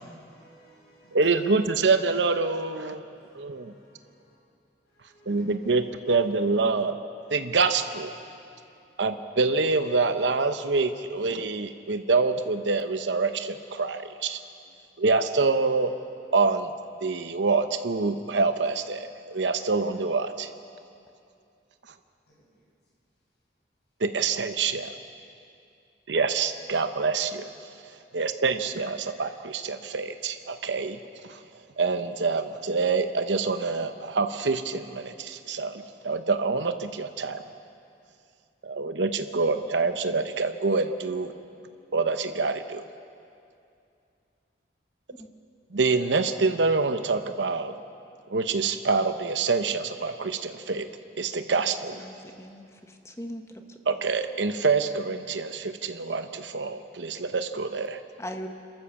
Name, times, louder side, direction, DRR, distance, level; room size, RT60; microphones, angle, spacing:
voice 1, 0.2-1.2 3.0-4.2 5.0-5.4, right 1 dB, 65° left, 6.8 m, -59 dB
voice 2, 1.1-3.0 3.3-3.7 5.3-7.0 7.3-8.1 9.0-14.4 15.0-15.9 16.3-16.7 17.0-20.5 24.0-24.8 26.1-27.5 28.1-31.4 31.8-37.4 38.6-41.3 41.9-42.8 45.7-47.7 48.3-50.9 51.2-52.1 53.9-58.0, right 4 dB, 80° right, 0.9 m, -26 dB
voice 3, 51.6-53.4 58.2-58.5, equal, 15° left, 1.2 m, -40 dB
27.0 x 13.5 x 7.1 m
head